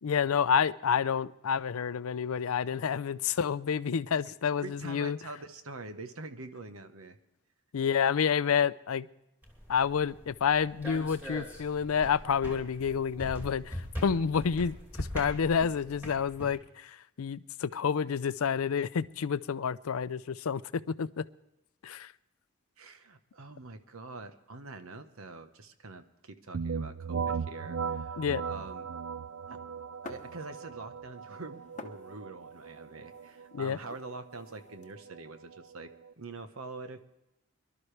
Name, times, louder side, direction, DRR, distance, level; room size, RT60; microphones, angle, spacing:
voice 1, 0.0-5.2 7.7-9.1 9.7-21.3 21.8-22.1 28.2-28.4 33.5-33.8, left 7 dB, 90° left, 17 dB, 0.5 m, -29 dB
voice 2, 4.6-7.2 22.8-28.9 29.5-29.6 30.0-37.0, right 3 dB, 85° right, 8 dB, 1.1 m, -45 dB
sound 1, 9.4-16.6, equal, 10° right, 2.7 m, -42 dB
sound 2, 26.5-36.1, right 6 dB, 70° right, 0.5 m, -38 dB
sound 3, 30.0-30.9 31.2-34.9, left 3 dB, 35° left, 0.8 m, -50 dB
23.5 x 12.0 x 3.3 m, 0.88 s
head